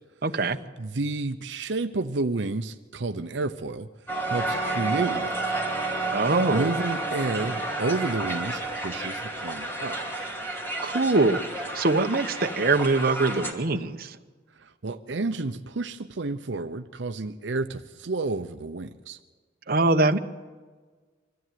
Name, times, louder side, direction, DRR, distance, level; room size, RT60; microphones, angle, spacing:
voice 1, 0.2-0.6 6.1-6.8 10.8-11.4 11.7-14.2 19.7-20.2, right 3 dB, 55° right, 7 dB, 1.0 m, -23 dB
voice 2, 0.8-3.9 4.3-5.3 6.5-10.0 14.8-19.2, right 3 dB, 75° right, 7 dB, 0.7 m, -30 dB
Crowd, 4.1-13.5, right 2 dB, 10° left, 2.8 m, -31 dB
25.0 x 14.5 x 9.3 m, 1.4 s
head